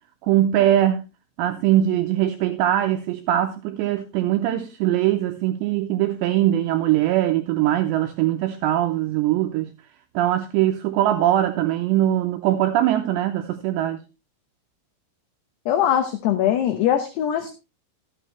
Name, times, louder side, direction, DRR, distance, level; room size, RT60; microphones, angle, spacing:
voice 1, 0.2-1.0 1.4-9.7 10.2-14.0, right 12 dB, 85° right, 2.6 m, -21 dB
voice 2, 15.7-17.5, left 10 dB, 75° left, 2.6 m, -21 dB
13.0 x 9.2 x 3.2 m
omnidirectional pair, 5.9 m